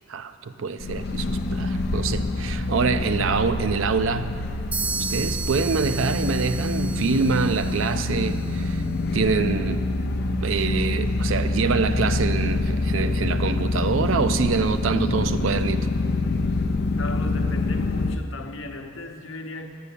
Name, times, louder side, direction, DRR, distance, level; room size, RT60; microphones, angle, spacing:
voice 1, 0.1-4.3 5.1-8.8 9.1-9.8 10.4-15.9, right 5 dB, 80° right, 11 dB, 0.5 m, -25 dB
sound 1, 0.8-18.2, left 2 dB, 55° left, 0.5 m, -26 dB
sound 2, 4.7-8.5, right 5 dB, 5° right, 0.3 m, -34 dB
voice 2, 17.0-19.7, left 2 dB, 75° left, 4 dB, 0.8 m, -35 dB
8.5 x 6.8 x 8.2 m, 2.3 s
head